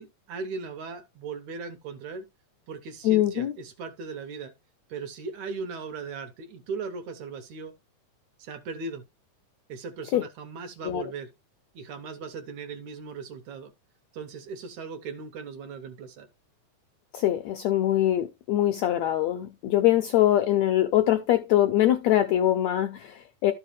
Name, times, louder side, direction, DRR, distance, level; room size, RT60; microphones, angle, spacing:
voice 1, 0.0-2.3 2.7-4.5 4.9-7.7 8.4-9.0 9.7-11.3 11.7-13.7 14.1-16.3, right 4 dB, 70° right, 2.1 m, -38 dB
voice 2, 3.0-3.5 10.1-10.2 10.8-11.0 17.1-23.5, left 13 dB, 75° left, 1.6 m, -23 dB
12.5 x 5.0 x 3.3 m
omnidirectional pair, 3.8 m